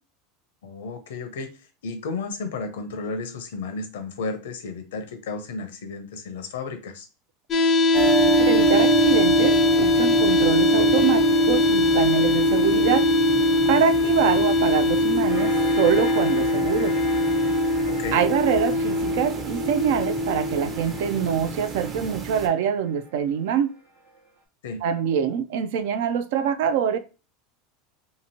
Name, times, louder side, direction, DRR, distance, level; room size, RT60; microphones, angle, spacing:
voice 1, 0.6-7.1 17.9-18.2 24.6-24.8, left 4 dB, 80° left, 0.6 m, -33 dB
sound 1, 7.5-21.5, left 2 dB, 40° left, 0.4 m, -21 dB
sound 2, 7.9-22.5, right 9 dB, 40° right, 0.7 m, -28 dB
voice 2, 8.4-13.0 13.7-16.9 18.1-23.7 24.8-27.0, right 8 dB, 70° right, 0.4 m, -24 dB
sound 3, 15.3-24.3, equal, 90° right, 1.0 m, -39 dB
2.8 x 2.6 x 2.8 m
hypercardioid pair, 95°, 0 cm